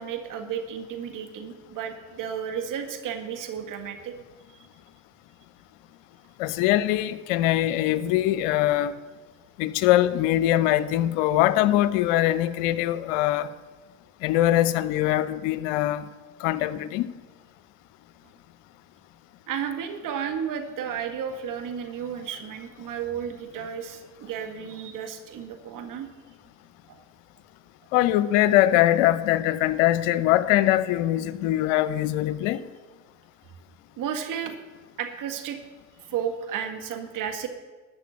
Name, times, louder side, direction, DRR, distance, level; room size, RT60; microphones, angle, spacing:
voice 1, 0.0-4.1 19.5-26.1 26.9-27.0 34.0-34.6 35.0-35.6 36.1-37.5, right 8 dB, 50° right, 1.9 m, -33 dB
voice 2, 6.4-8.9 9.6-13.5 14.2-16.1 16.4-17.1 27.9-32.6, left 14 dB, 65° left, 0.8 m, -22 dB
12.5 x 7.0 x 8.3 m
hypercardioid pair, 70°, 40 cm